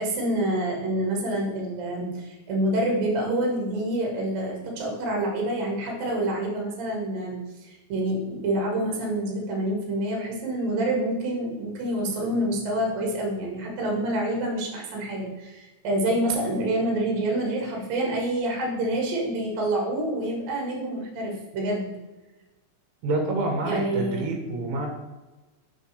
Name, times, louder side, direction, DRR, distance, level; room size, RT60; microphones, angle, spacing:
voice 1, 0.0-21.9 23.6-24.3, right 1 dB, 55° right, -1 dB, 3.2 m, -27 dB
voice 2, 23.0-24.9, right 2 dB, 85° right, 1 dB, 3.6 m, -27 dB
6.8 x 6.4 x 3.3 m, 1.1 s
omnidirectional pair, 5.3 m